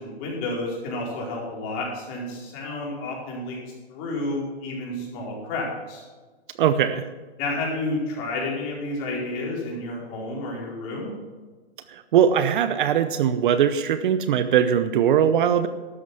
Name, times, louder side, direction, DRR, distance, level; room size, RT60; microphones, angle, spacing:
voice 1, 0.0-3.6 3.9-6.0 7.4-11.1, left 2 dB, 35° left, -2 dB, 4.7 m, -30 dB
voice 2, 6.6-7.1 11.9-15.7, right 8 dB, 50° right, 11 dB, 0.8 m, -20 dB
12.5 x 9.4 x 6.0 m, 1.3 s
hypercardioid pair, 145°, 33 cm